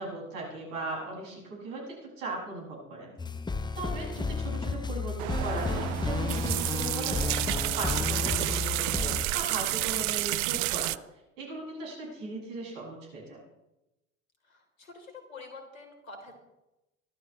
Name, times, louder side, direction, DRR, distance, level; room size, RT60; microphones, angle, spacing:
voice 1, 0.0-3.2 3.8-10.9 11.4-13.4, right 2 dB, 70° right, -2 dB, 7.2 m, -38 dB
sound 1, 3.2-9.3, left 4 dB, 10° left, 0.9 m, -32 dB
sound 2, 5.2-11.0, right 21 dB, 45° right, 0.5 m, -30 dB
voice 2, 14.5-16.3, left 3 dB, 85° left, 4 dB, 3.7 m, -47 dB
25.0 x 13.0 x 3.3 m, 0.94 s
figure-of-eight pair, 70°, 39 cm